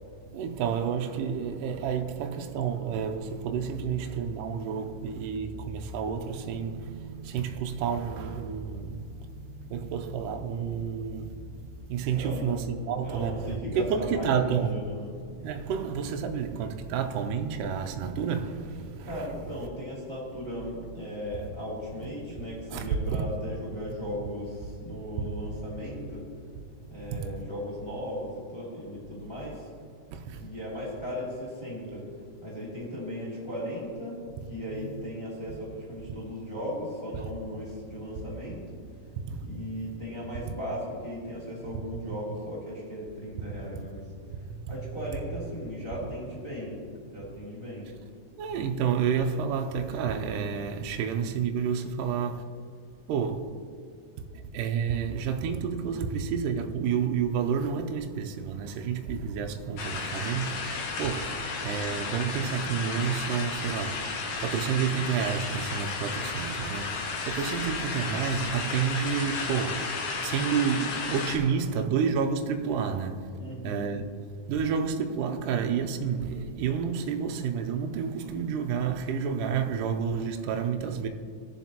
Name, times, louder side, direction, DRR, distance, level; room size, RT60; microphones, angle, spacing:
voice 1, 0.3-14.8 15.4-19.3 22.3-22.4 22.7-23.2 25.2-25.5 27.0-27.3 30.1-30.4 34.8-35.0 35.5-35.6 38.2-38.3 39.1-39.9 43.5-43.9 48.4-52.4 53.1-53.5 54.5-64.0 64.4-69.9 70.2-73.3 73.6-74.2 74.5-81.1, right 7 dB, 85° right, 1.9 m, -30 dB
voice 2, 12.1-12.7 13.0-15.1 19.1-24.5 24.8-26.2 26.9-29.6 30.4-32.0 32.4-34.2 34.5-38.6 39.4-44.0 44.7-46.7 47.1-47.8 73.4-73.8, equal, 10° left, 2.0 m, -37 dB
sound 1, 59.8-71.4, left 4 dB, 70° left, 2.0 m, -33 dB
18.5 x 7.2 x 2.9 m
omnidirectional pair, 4.4 m